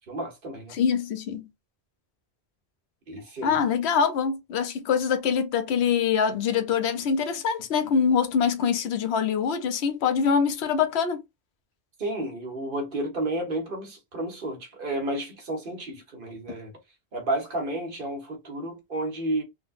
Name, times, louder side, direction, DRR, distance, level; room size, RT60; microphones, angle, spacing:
voice 1, 0.1-0.8 3.1-3.6 12.0-16.7 17.1-19.4, right 1 dB, 55° right, 1.2 m, -31 dB
voice 2, 0.7-1.5 3.4-11.2, left 6 dB, 80° left, 0.9 m, -24 dB
3.5 x 2.2 x 2.4 m
omnidirectional pair, 1.1 m